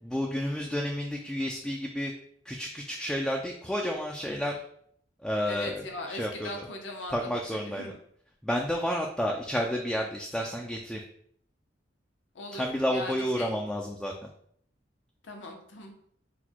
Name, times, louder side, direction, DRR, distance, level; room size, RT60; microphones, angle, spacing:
voice 1, 0.0-2.1 2.4-4.6 5.2-6.7 7.1-7.9 8.4-11.0 12.5-14.1, equal, 5° left, 0 dB, 0.3 m, -31 dB
voice 2, 5.4-7.4 7.7-8.0 12.3-13.5 15.2-15.9, left 1 dB, 85° left, 2 dB, 0.8 m, -40 dB
3.9 x 2.2 x 4.4 m, 0.65 s
head